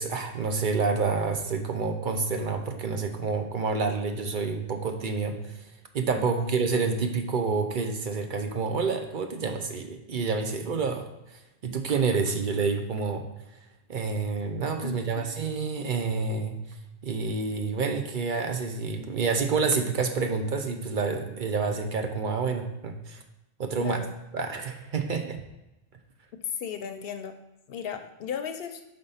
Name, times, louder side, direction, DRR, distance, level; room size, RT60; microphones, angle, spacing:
voice 1, 0.0-5.7 5.9-13.3 13.9-16.6 17.0-23.2 23.6-24.0 24.3-25.4, right 4 dB, 55° right, 5 dB, 0.8 m, -28 dB
voice 2, 6.1-6.5 14.8-15.2 23.8-24.1 26.5-27.3 27.7-28.8, left 7 dB, 70° left, 7 dB, 0.8 m, -36 dB
5.2 x 3.9 x 5.5 m, 0.95 s
omnidirectional pair, 1.1 m